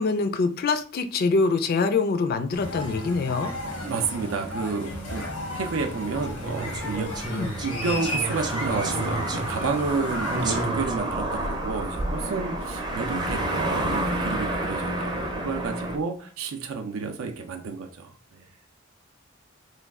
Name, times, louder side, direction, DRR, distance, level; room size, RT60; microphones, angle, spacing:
voice 1, 0.0-3.5 7.3-7.5, left 4 dB, 45° left, 0.3 m, -24 dB
sound 1, 2.5-10.6, left 1 dB, 85° left, 0.9 m, -34 dB
voice 2, 3.8-5.3 5.5-18.5, right 4 dB, 75° right, 0.4 m, -31 dB
sound 2, 6.1-16.0, right 1 dB, 20° right, 0.5 m, -29 dB
3.1 x 2.2 x 3.5 m
head